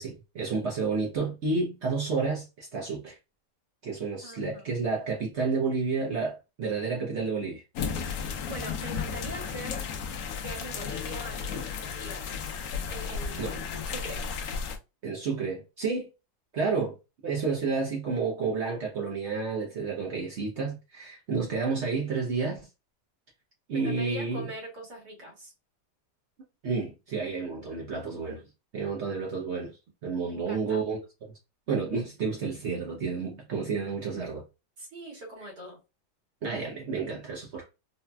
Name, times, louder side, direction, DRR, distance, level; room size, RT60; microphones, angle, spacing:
voice 1, 0.0-3.2 3.8-7.6 13.4-13.6 15.0-16.1 16.5-17.0 17.2-22.7 23.7-24.5 26.6-28.4 28.7-29.7 30.0-31.0 31.7-34.4 36.4-37.7, right 4 dB, 60° right, 0.7 m, -30 dB
voice 2, 4.2-4.7 7.9-9.9 10.4-12.4 12.9-13.7 13.9-14.2 23.7-25.5 30.3-30.8 34.8-35.8, equal, 75° right, 2.1 m, -42 dB
sound 1, 7.7-14.8, left 6 dB, 70° left, 0.9 m, -34 dB
4.1 x 2.1 x 2.2 m
omnidirectional pair, 1.8 m